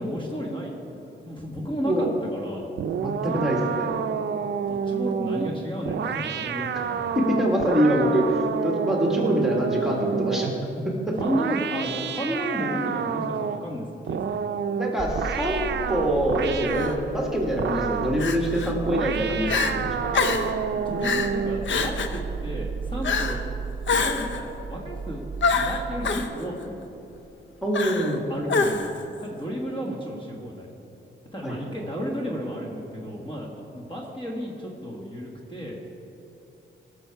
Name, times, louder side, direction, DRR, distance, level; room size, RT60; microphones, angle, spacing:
voice 1, 0.0-2.7 3.3-3.4 4.6-7.2 11.2-14.4 20.4-20.6 20.8-23.4 24.0-25.2 25.5-26.8 28.3-30.7 31.3-35.8, equal, 25° left, -1 dB, 1.6 m, -33 dB
sound 1, 2.8-10.6 11.2-13.7 14.1-17.0 17.6-18.2 18.9-21.7, right 7 dB, 60° right, 0.5 m, -29 dB
voice 2, 3.0-3.9 6.7-6.8 7.2-10.5 10.8-11.2 14.8-20.1 27.6-28.2 31.4-31.6, equal, ahead, -1 dB, 1.7 m, -25 dB
sound 2, 15.0-26.3, right 5 dB, 25° right, 1.0 m, -35 dB
Crying sobbing, 16.7-16.9 18.2-18.7 19.1-19.2 19.5-19.7 20.1-20.5 21.0-21.3 21.7-22.2 23.0-23.4 23.9-24.4 25.4-26.3 27.7-28.2 28.5-29.0, left 4 dB, 65° left, 0.7 m, -25 dB
17.5 x 6.4 x 4.6 m, 2.9 s
wide cardioid pair, 110°, 20 cm